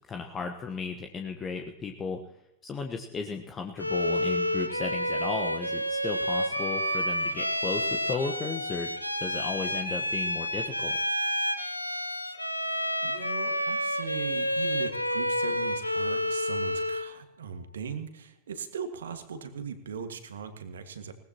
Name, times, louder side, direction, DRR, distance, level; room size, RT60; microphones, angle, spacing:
voice 1, 0.1-2.2 2.6-8.9 9.2-11.0, left 4 dB, 25° left, 5 dB, 1.2 m, -35 dB
Bowed string instrument, 3.8-17.2, equal, 85° left, 1.0 m, -29 dB
voice 2, 12.6-21.1, right 6 dB, 65° right, 8 dB, 1.8 m, -39 dB
20.5 x 18.5 x 3.0 m, 0.86 s
figure-of-eight pair, 90°, 0 cm